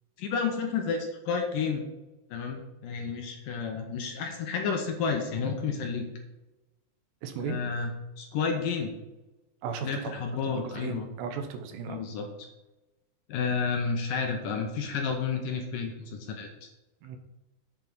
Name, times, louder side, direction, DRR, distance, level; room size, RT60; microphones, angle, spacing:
voice 1, 0.2-1.8 2.3-6.1 7.4-8.9 9.8-11.1 11.9-12.5 13.3-16.7, left 5 dB, 70° left, 3 dB, 2.3 m, -31 dB
voice 2, 7.2-7.6 9.6-10.2 10.4-12.0 17.0-17.2, right 6 dB, 90° right, 6 dB, 3.2 m, -36 dB
8.5 x 7.5 x 4.0 m, 1.0 s
omnidirectional pair, 4.7 m